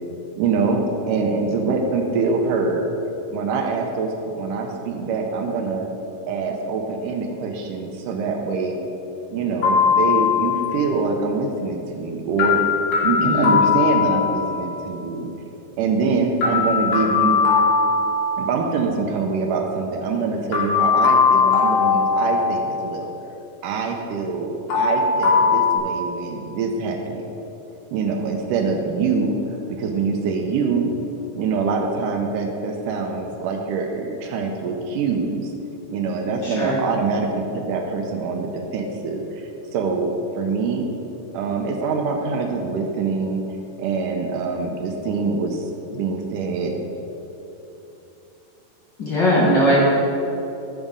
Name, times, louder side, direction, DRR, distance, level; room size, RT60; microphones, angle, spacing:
voice 1, 0.4-2.9 3.3-5.9 6.3-8.8 9.3-12.6 13.0-15.3 15.8-17.5 18.4-23.1 23.6-27.2 27.9-30.9 31.4-35.5 35.9-40.1 40.4-40.9 41.3-43.4 43.8-46.7, right 4 dB, 75° right, 3 dB, 2.2 m, -24 dB
sound 1, 9.6-10.8 12.4-14.7 16.4-18.7 20.5-22.9 24.7-25.8, left 5 dB, 70° left, 4.0 m, -19 dB
voice 2, 13.2-13.5 36.4-36.8 49.0-49.8, equal, 45° left, -6 dB, 1.7 m, -19 dB
12.5 x 6.2 x 5.4 m, 3.0 s
omnidirectional pair, 4.0 m